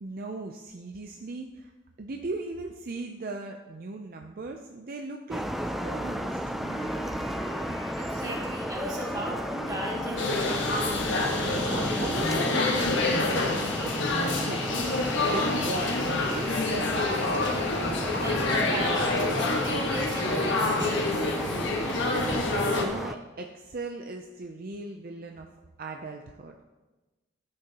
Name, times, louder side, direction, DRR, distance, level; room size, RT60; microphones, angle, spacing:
voice 1, 0.0-1.7 2.0-5.5 5.8-6.8 11.4-16.7 21.5-25.5 25.8-26.6, right 3 dB, 50° right, 3 dB, 0.5 m, -38 dB
sound 1, 5.3-23.1, equal, ahead, 0.3 m, -34 dB
Wind instrument woodwind instrument, 5.4-11.6, right 1 dB, 45° left, 2.2 m, -45 dB
voice 2, 8.0-11.1 18.2-21.3, equal, 20° right, -4 dB, 2.3 m, -37 dB
sound 2, 10.2-22.8, left 2 dB, 75° left, 1.5 m, -27 dB
13.5 x 7.7 x 3.0 m, 1.2 s
head